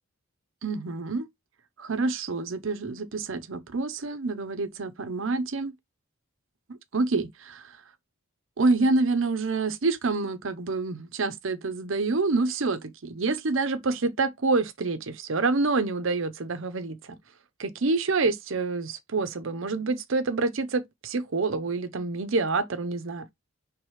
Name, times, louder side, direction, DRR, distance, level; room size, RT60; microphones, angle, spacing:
voice 1, 0.6-1.3 1.8-5.7 6.9-7.6 8.6-17.2 17.6-23.3, right 3 dB, 65° right, 0.7 m, -27 dB
4.9 x 3.4 x 3.2 m
head